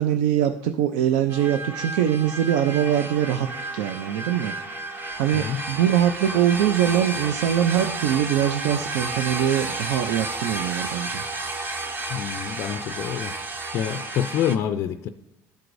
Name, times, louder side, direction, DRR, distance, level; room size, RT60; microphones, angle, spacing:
voice 1, 0.0-3.5 3.7-4.5 5.2-11.2, right 10 dB, 80° right, 8 dB, 0.4 m, -23 dB
sound 1, 1.3-14.6, right 2 dB, 30° right, 0.8 m, -32 dB
voice 2, 12.1-13.4 13.7-15.1, left 9 dB, 45° left, 9 dB, 0.3 m, -27 dB
13.5 x 4.7 x 2.6 m, 0.94 s
cardioid pair, 135°, 6 cm